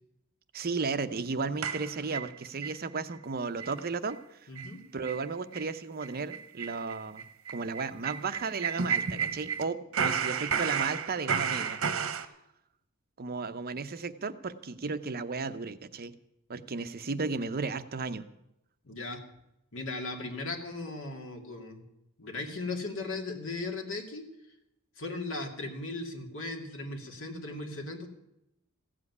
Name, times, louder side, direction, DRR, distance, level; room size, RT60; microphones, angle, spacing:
voice 1, 0.5-4.5 4.9-7.2 7.5-12.3 13.2-16.2 16.5-18.2, right 4 dB, 45° right, 11 dB, 0.7 m, -34 dB
sound 1, 1.6-2.8 3.1-3.2 3.6-3.8 4.1-4.2 4.6-4.7 5.0-5.2 5.5-5.7 6.0-9.6 9.9-12.3, right 7 dB, 65° right, 1.0 m, -32 dB
voice 2, 4.5-4.8 18.8-19.2 19.7-21.8 22.2-24.3 25.0-28.1, left 2 dB, 65° left, 3 dB, 2.4 m, -37 dB
15.5 x 7.7 x 9.6 m, 0.85 s
head